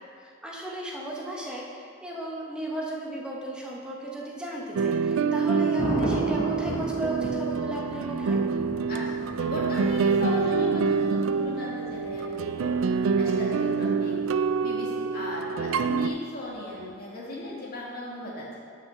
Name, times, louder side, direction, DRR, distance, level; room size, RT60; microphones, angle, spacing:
voice 1, 0.2-8.4, right 1 dB, 5° right, -4 dB, 1.1 m, -35 dB
sound 1, 4.8-16.1, right 5 dB, 80° right, 0.3 m, -26 dB
Thunder, 5.8-13.8 16.5-16.9, left 1 dB, 30° left, 0.9 m, -36 dB
voice 2, 8.9-12.8 13.1-14.2 14.6-18.6, left 1 dB, 45° left, -5 dB, 1.9 m, -36 dB
6.0 x 5.8 x 6.5 m, 2.2 s
head